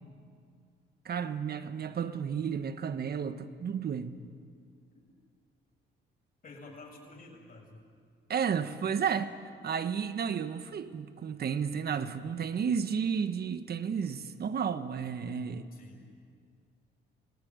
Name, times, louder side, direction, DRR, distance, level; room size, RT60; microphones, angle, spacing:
voice 1, 1.0-4.2 8.3-9.4 9.6-15.7, right 7 dB, 50° right, 1.4 m, -32 dB
voice 2, 6.4-7.8 15.7-16.0, left 2 dB, 45° left, 7.5 m, -50 dB
28.0 x 19.0 x 9.6 m
cardioid pair, 90°, 20 cm